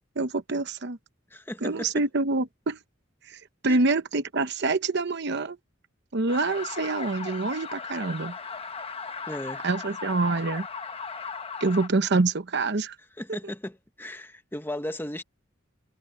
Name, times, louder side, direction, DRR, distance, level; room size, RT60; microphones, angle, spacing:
voice 1, 0.2-1.0 1.6-2.8 3.3-5.6 6.1-8.4 9.6-10.7 11.6-13.0, right 3 dB, 55° right, 0.9 m, -26 dB
voice 2, 1.3-2.0 3.6-3.9 9.3-9.6 13.2-15.2, left 1 dB, 10° left, 1.2 m, -36 dB
sound 1, 6.3-11.9, left 5 dB, 30° left, 1.1 m, -37 dB
head